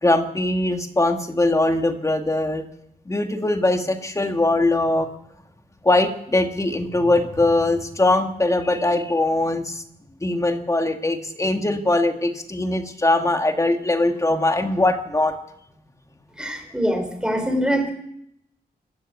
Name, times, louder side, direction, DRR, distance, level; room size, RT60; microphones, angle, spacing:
voice 1, 0.0-2.6 3.1-5.1 5.8-9.8 10.2-15.4, left 2 dB, 20° left, 6 dB, 1.8 m, -21 dB
voice 2, 16.4-17.9, equal, 5° right, 6 dB, 3.8 m, -23 dB
23.5 x 13.5 x 8.4 m, 0.77 s
wide cardioid pair, 145°, 17 cm